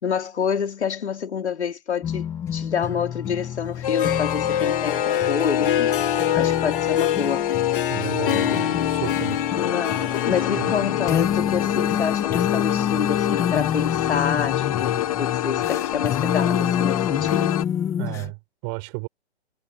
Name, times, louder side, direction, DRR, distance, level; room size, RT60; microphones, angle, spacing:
voice 1, 0.0-7.5 8.5-8.7 9.6-17.5, left 7 dB, 80° left, 4.4 m, -28 dB
sound 1, 2.0-18.3, left 9 dB, 10° left, 1.5 m, -28 dB
Harp, 3.7-12.7, left 9 dB, 55° left, 0.6 m, -28 dB
sound 2, 3.8-17.6, left 12 dB, 30° left, 1.4 m, -26 dB
voice 2, 7.9-9.4 10.6-10.7 18.0-19.1, right 32 dB, 20° right, 6.4 m, -32 dB
hypercardioid pair, 170°, 33 cm